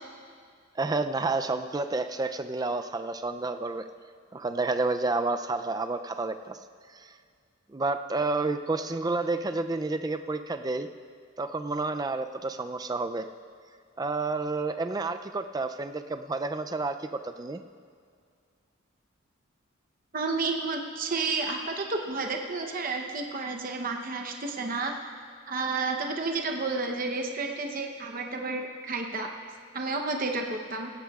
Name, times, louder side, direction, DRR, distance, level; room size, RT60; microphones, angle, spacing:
voice 1, 0.8-3.8 4.3-6.6 6.9-7.1 7.7-10.9 11.4-13.2 14.0-17.6, right 3 dB, 20° right, 9 dB, 0.3 m, -30 dB
voice 2, 20.1-24.9 25.5-29.3 29.7-30.9, right 3 dB, 40° right, 3 dB, 0.8 m, -31 dB
17.5 x 16.0 x 2.4 m, 2.2 s
head